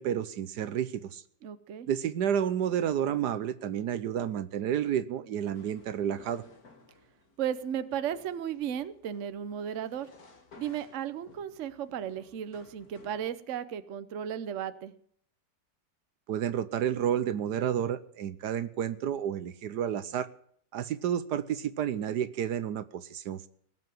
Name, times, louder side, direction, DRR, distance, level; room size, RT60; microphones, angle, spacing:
voice 1, 0.0-1.2 1.9-6.4 16.3-20.3 20.7-23.5, right 9 dB, 70° right, 15 dB, 1.3 m, -30 dB
voice 2, 1.4-1.9 7.4-10.1 10.6-14.9, right 9 dB, 55° right, 13 dB, 1.0 m, -35 dB
sound 1, 5.4-13.3, left 3 dB, 55° left, 2.6 m, -57 dB
19.5 x 7.8 x 7.7 m, 0.64 s
omnidirectional pair, 2.0 m